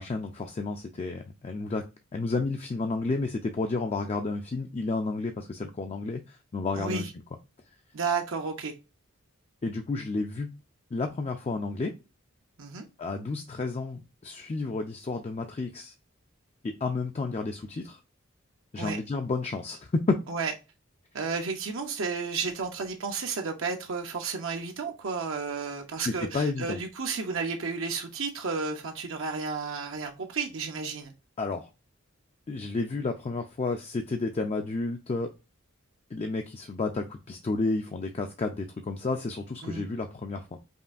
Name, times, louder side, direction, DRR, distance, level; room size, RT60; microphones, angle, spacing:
voice 1, 0.0-1.8 2.1-7.0 9.6-10.5 10.9-11.9 13.0-15.9 16.6-18.0 18.7-20.2 26.1-26.8 31.4-31.7 32.5-35.3 36.1-40.5, left 3 dB, 30° left, 0.4 m, -31 dB
voice 2, 6.7-7.1 7.9-8.7 12.6-12.8 18.8-19.0 20.3-20.5 21.1-31.1 39.6-39.9, right 4 dB, 70° right, 0.6 m, -32 dB
5.3 x 2.5 x 2.4 m
head